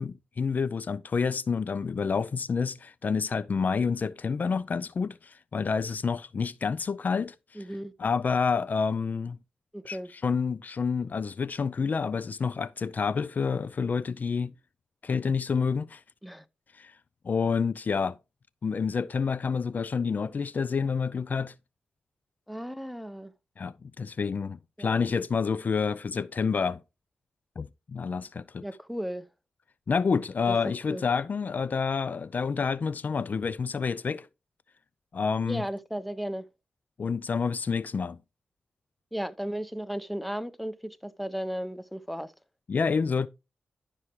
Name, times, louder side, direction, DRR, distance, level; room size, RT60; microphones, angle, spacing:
voice 1, 0.0-7.3 8.0-9.4 9.9-14.5 15.0-16.0 16.7-16.9 17.2-18.2 18.6-21.5 23.6-26.8 27.6-28.6 29.9-34.3 35.1-35.6 37.0-38.2 42.7-43.3, left 5 dB, 55° left, 0.4 m, -28 dB
voice 2, 7.5-7.9 9.7-10.1 16.2-16.4 22.5-23.3 24.8-24.9 28.6-29.3 30.5-30.6 30.9-31.0 35.4-36.4 39.1-42.3, equal, ahead, 0.9 m, -35 dB
13.0 x 6.0 x 3.1 m
cardioid pair, 60°, 4 cm